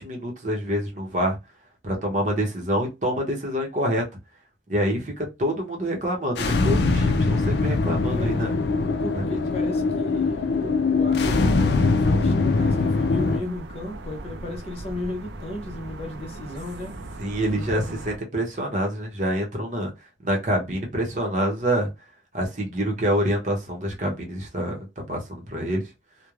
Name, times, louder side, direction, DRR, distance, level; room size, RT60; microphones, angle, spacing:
voice 1, 0.0-1.4 1.8-4.0 4.7-8.5 9.1-9.4 17.2-19.9 20.2-21.9 22.3-25.8, equal, 45° right, 0.8 m, -26 dB
sound 1, 6.4-13.4, left 3 dB, 70° left, 0.4 m, -22 dB
voice 2, 8.1-17.0 17.5-18.1, left 2 dB, 35° left, 0.7 m, -35 dB
sound 2, 12.5-18.2, right 2 dB, 75° right, 0.5 m, -39 dB
3.0 x 2.2 x 2.3 m
head